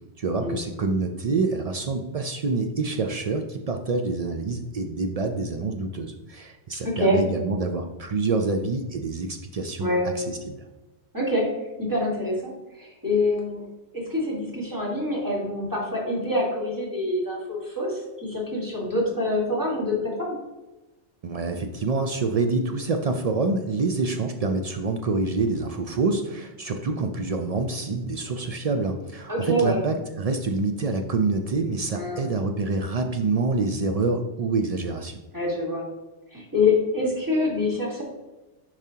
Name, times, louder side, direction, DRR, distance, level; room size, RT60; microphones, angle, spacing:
voice 1, 0.2-9.9 10.5-10.6 21.2-35.2, right 3 dB, 60° right, 5 dB, 0.4 m, -26 dB
voice 2, 6.8-7.2 9.8-10.0 11.1-11.4 11.8-13.7 13.9-20.4 29.3-29.8 31.9-32.2 35.3-35.9 36.3-38.0, left 2 dB, 20° right, -3 dB, 1.7 m, -25 dB
7.1 x 5.0 x 2.8 m, 1.1 s
omnidirectional pair, 1.1 m